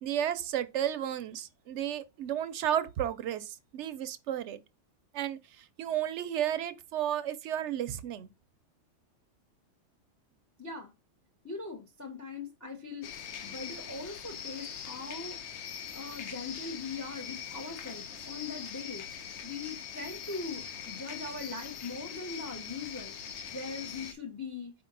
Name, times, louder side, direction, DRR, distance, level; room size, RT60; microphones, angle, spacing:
voice 1, 0.0-4.6 5.1-8.3, right 10 dB, 75° right, 0.8 m, -33 dB
voice 2, 10.6-10.9 11.4-13.1 13.4-19.0 19.4-24.7, left 4 dB, 20° left, 0.6 m, -41 dB
sound 1, 13.0-24.1, left 7 dB, 70° left, 0.9 m, -42 dB
4.9 x 2.9 x 3.8 m
omnidirectional pair, 1.3 m